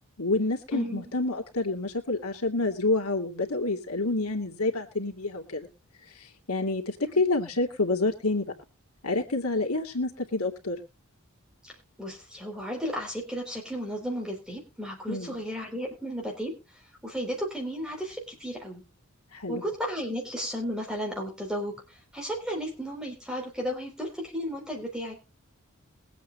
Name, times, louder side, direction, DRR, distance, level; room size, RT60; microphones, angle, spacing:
voice 1, 0.2-5.7 6.2-8.5 9.0-10.8 15.1-15.4 19.3-19.6, left 2 dB, 80° left, 4 dB, 2.5 m, -28 dB
voice 2, 0.7-1.0 11.6-11.7 12.0-16.5 17.0-18.8 19.5-21.7 22.1-25.2, equal, 5° right, 0 dB, 3.8 m, -34 dB
22.0 x 8.4 x 2.3 m, 0.29 s
head